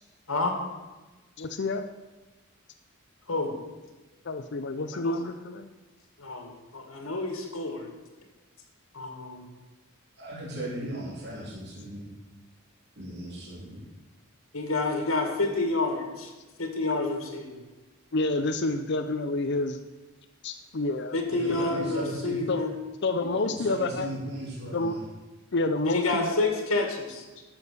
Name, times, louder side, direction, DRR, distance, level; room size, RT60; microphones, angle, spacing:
voice 1, 1.4-1.8 4.3-5.7 18.1-19.8 20.4-21.2 21.6-21.7 22.5-22.6 23.0-24.1 24.7-25.0 25.5-26.6, left 2 dB, 60° left, 8 dB, 0.6 m, -29 dB
voice 2, 6.2-7.9 8.9-9.4 14.5-16.3 16.6-17.6 21.1-22.7 25.8-27.2, left 2 dB, 85° left, 3 dB, 2.0 m, -29 dB
voice 3, 10.2-12.1 13.0-13.8 21.3-22.4 23.2-25.0, right 1 dB, 55° right, -5 dB, 3.0 m, -37 dB
12.5 x 6.5 x 6.7 m, 1.2 s
head